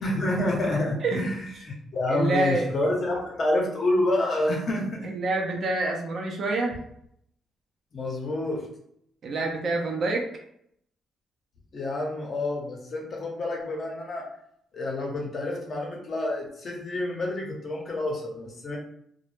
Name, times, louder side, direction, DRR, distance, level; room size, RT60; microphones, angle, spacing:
voice 1, 0.0-5.1 7.9-8.7 11.7-14.3 14.7-18.8, left 1 dB, 50° left, -1 dB, 0.8 m, -28 dB
voice 2, 2.1-2.7 5.0-6.8 9.2-10.3, right 2 dB, 55° right, 1 dB, 0.5 m, -27 dB
2.1 x 2.0 x 3.0 m, 0.71 s
cardioid pair, 90°, 0 cm